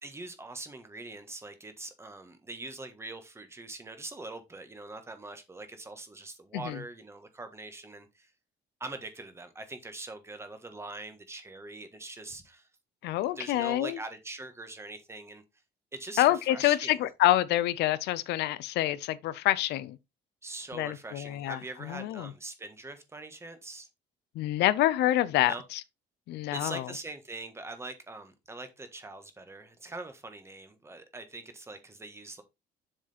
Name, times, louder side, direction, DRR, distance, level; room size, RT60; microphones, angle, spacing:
voice 1, 0.0-8.3 8.8-12.7 13.3-15.4 15.9-17.0 20.4-23.9 25.4-25.6 26.5-32.4, right 2 dB, 15° right, 1.5 m, -43 dB
voice 2, 13.0-14.0 16.2-20.0 20.7-22.3 24.4-25.8 26.3-26.9, left 14 dB, 85° left, 0.6 m, -27 dB
7.2 x 4.9 x 4.2 m
cardioid pair, 135°, 17 cm